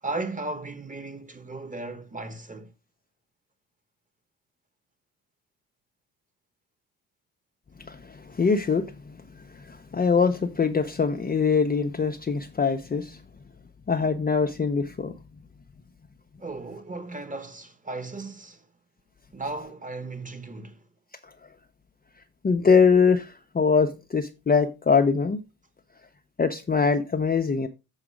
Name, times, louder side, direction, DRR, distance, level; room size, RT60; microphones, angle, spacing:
voice 1, 0.0-2.7 16.4-18.7 19.3-20.9, right 2 dB, 15° right, 1.5 m, -36 dB
voice 2, 7.9-13.2 13.9-15.2 22.4-25.4 26.4-27.7, left 5 dB, 20° left, 0.8 m, -23 dB
7.2 x 4.8 x 5.0 m
hypercardioid pair, 50°, 45 cm